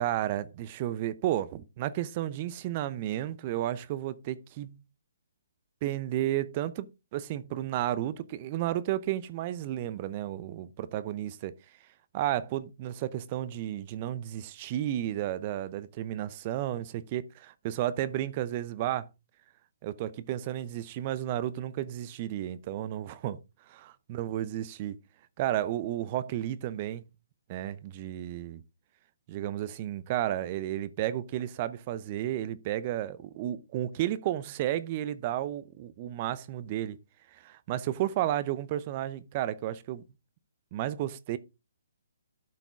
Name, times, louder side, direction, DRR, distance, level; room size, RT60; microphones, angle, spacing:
voice 1, 0.0-4.8 5.8-6.9 7.1-11.5 12.1-19.1 19.8-23.4 23.7-25.0 25.4-27.0 27.5-28.6 29.3-37.0 37.3-40.0 40.7-41.4, right 12 dB, 35° right, 0.7 m, -32 dB
12.0 x 6.1 x 3.5 m
figure-of-eight pair, 135°, 0 cm